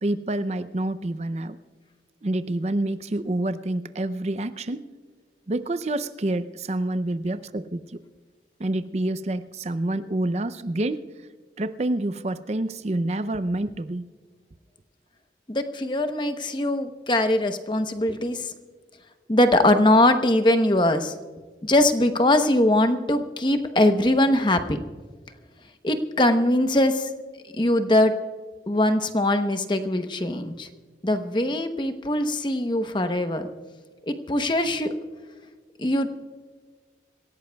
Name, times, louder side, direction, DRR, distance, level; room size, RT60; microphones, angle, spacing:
voice 1, 0.0-1.6 2.2-4.8 5.5-8.0 8.6-11.0 11.6-14.1, right 1 dB, 40° right, 12 dB, 0.5 m, -27 dB
voice 2, 15.5-18.5 19.3-21.1 21.6-24.8 25.8-27.1 27.6-28.1 28.7-30.7 31.0-33.5 34.1-34.9 35.8-36.1, left 1 dB, 25° left, 7 dB, 0.9 m, -21 dB
26.5 x 16.5 x 2.3 m, 1.5 s
head